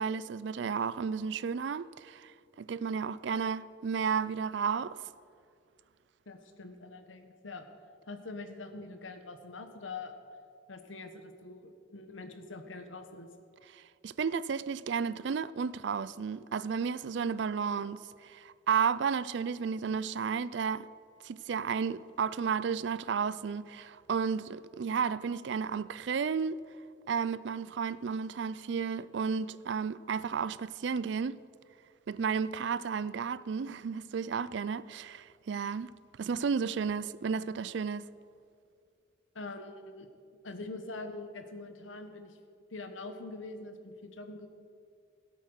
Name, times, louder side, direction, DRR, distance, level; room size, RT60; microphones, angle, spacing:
voice 1, 0.0-5.0 13.7-20.9 21.2-26.6 27.1-31.4 32.1-35.9 36.2-38.0, right 6 dB, 65° right, 0.4 m, -33 dB
voice 2, 6.3-7.7 8.1-10.1 10.7-13.3 39.3-40.1 40.4-42.4 42.7-44.5, left 3 dB, 90° left, 1.3 m, -44 dB
16.5 x 8.4 x 6.5 m
head